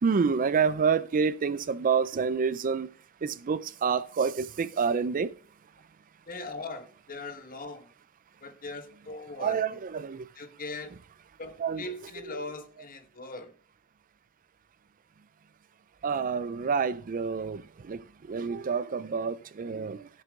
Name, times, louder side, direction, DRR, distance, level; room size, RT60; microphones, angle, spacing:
voice 1, 0.0-2.9 3.2-5.3 9.4-10.3 11.6-11.8 12.2-12.4 16.0-20.1, right 6 dB, 40° right, 0.4 m, -28 dB
voice 2, 6.3-7.9 8.4-9.6 10.4-11.0 11.4-13.5, left 2 dB, 40° left, 1.3 m, -40 dB
15.5 x 6.7 x 3.7 m
head